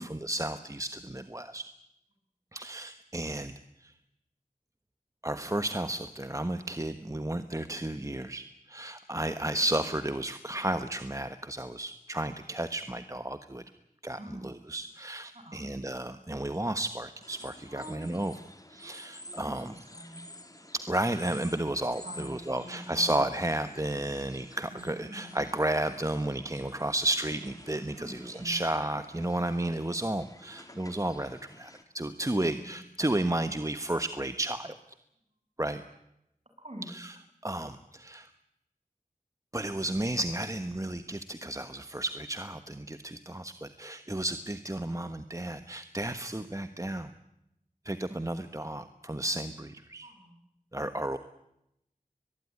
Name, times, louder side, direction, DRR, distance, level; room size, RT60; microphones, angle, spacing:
voice 1, 0.0-1.6 2.5-3.5 3.8-3.9 5.2-13.6 14.0-18.3 18.7-19.7 20.7-34.8 35.6-35.8 36.9-37.1 37.4-38.3 39.5-47.1 47.8-50.1 50.7-51.2, right 1 dB, 20° right, 10 dB, 1.2 m, -33 dB
voice 2, 14.2-14.5 15.3-15.6 17.7-18.2 19.4-20.2 22.0-23.2 24.7-25.4 28.0-28.7 32.4-32.8 36.6-36.9 50.0-50.4, right 1 dB, 45° right, 4 dB, 7.5 m, -45 dB
sound 1, 17.2-31.8, left 1 dB, 25° left, 2.8 m, -51 dB
23.0 x 20.5 x 9.8 m, 0.83 s
wide cardioid pair, 55°, 15 cm